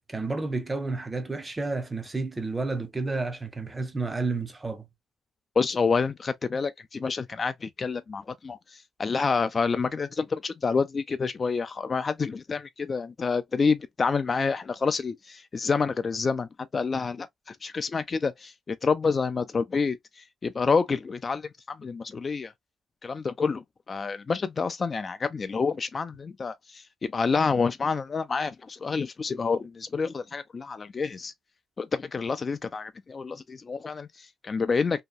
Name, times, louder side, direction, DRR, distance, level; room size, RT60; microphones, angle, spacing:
voice 1, 0.1-4.9, right 3 dB, 20° right, 0.6 m, -31 dB
voice 2, 5.6-22.5 23.0-31.3 31.8-35.0, left 5 dB, 35° left, 0.3 m, -28 dB
2.7 x 2.2 x 2.3 m
cardioid pair, 90°, 0 cm